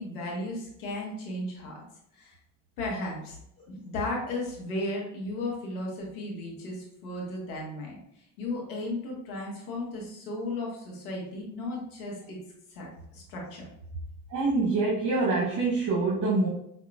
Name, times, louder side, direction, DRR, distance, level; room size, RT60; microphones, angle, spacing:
voice 1, 0.0-1.8 2.1-2.4 2.8-12.4 12.7-13.6, left 2 dB, 85° left, -2 dB, 1.3 m, -35 dB
voice 2, 14.3-16.5, right 3 dB, 45° right, -4 dB, 1.0 m, -25 dB
5.1 x 2.8 x 2.3 m, 0.75 s
hypercardioid pair, 65°, 43 cm